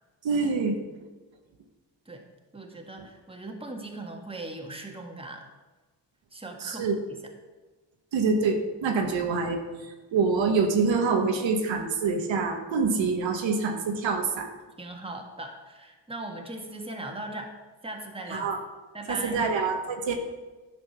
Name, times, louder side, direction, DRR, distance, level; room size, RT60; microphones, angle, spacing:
voice 1, 0.2-0.8 6.6-6.9 8.1-14.5 18.3-18.6 19.1-20.1, right 4 dB, 85° right, 4 dB, 1.2 m, -26 dB
voice 2, 2.5-5.5 6.3-7.2 14.8-17.5 17.8-18.5 18.9-19.4, right 2 dB, 10° right, 2 dB, 1.5 m, -39 dB
10.5 x 5.2 x 6.0 m, 1.2 s
cardioid pair, 75°, 44 cm